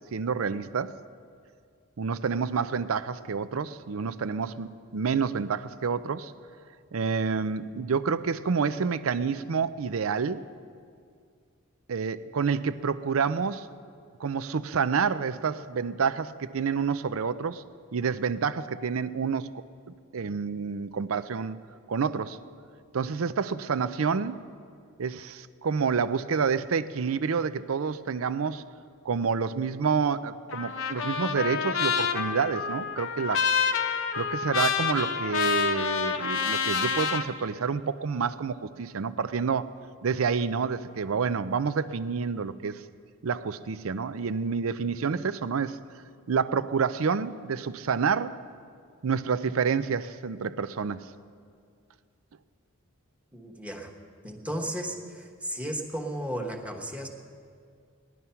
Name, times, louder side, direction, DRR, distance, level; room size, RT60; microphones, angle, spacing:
voice 1, 0.1-0.9 2.0-6.3 6.9-10.4 11.9-13.7 14.2-17.6 17.9-19.5 20.1-21.6 21.9-22.4 22.9-24.4 25.0-28.6 29.0-33.5 34.1-39.8 40.0-42.8 43.2-45.8 46.3-48.4 49.0-51.1, right 5 dB, 80° right, 14 dB, 0.5 m, -28 dB
Trumpet, 30.5-37.3, left 6 dB, 65° left, 0.8 m, -28 dB
voice 2, 53.3-53.9 54.2-57.1, right 1 dB, 5° right, 2 dB, 1.2 m, -34 dB
17.0 x 11.0 x 5.7 m, 2.2 s
head